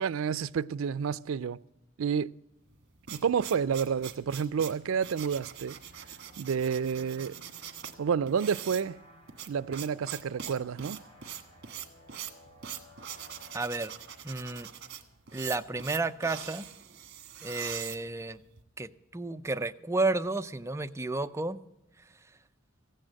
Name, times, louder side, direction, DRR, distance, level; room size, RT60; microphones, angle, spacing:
voice 1, 0.0-1.6 2.0-2.3 3.1-5.8 6.4-7.3 8.0-9.0 9.5-11.0, right 7 dB, 80° right, 0.4 m, -30 dB
sound 1, 2.7-18.6, right 9 dB, 55° right, 1.5 m, -43 dB
sound 2, 5.3-15.7, equal, 30° left, 4.3 m, -57 dB
voice 2, 13.5-13.9 14.2-14.7 15.3-16.7 17.4-18.4 18.8-21.6, right 2 dB, 15° right, 0.5 m, -32 dB
15.5 x 9.0 x 7.5 m
head